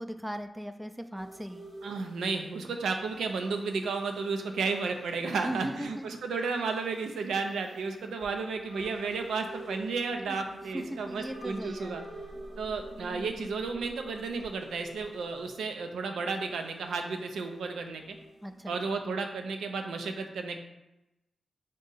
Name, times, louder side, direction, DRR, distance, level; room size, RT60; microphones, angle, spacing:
voice 1, 0.0-1.7 5.3-6.1 10.3-10.4 10.7-12.0 18.4-18.7, equal, 10° right, 8 dB, 0.3 m, -38 dB
sound 1, 1.1-18.9, right 1 dB, 65° right, 1.1 m, -48 dB
voice 2, 1.8-12.0 12.6-18.2 18.7-20.6, right 4 dB, 85° right, 5 dB, 0.4 m, -33 dB
3.6 x 2.7 x 3.9 m, 0.93 s
supercardioid pair, 45°, 0 cm